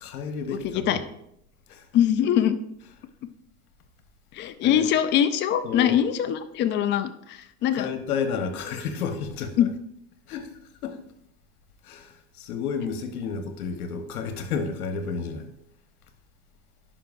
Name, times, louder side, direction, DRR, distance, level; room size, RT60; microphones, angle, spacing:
voice 1, 0.0-1.0 1.7-1.9 4.6-4.9 5.6-6.0 7.7-9.7 10.3-11.0 11.8-15.5, left 5 dB, 80° left, 1.2 m, -31 dB
voice 2, 0.6-1.0 1.9-2.6 4.3-7.9 9.6-9.7, left 10 dB, 25° left, 0.4 m, -23 dB
10.0 x 5.6 x 2.6 m
hypercardioid pair, 110°, 44 cm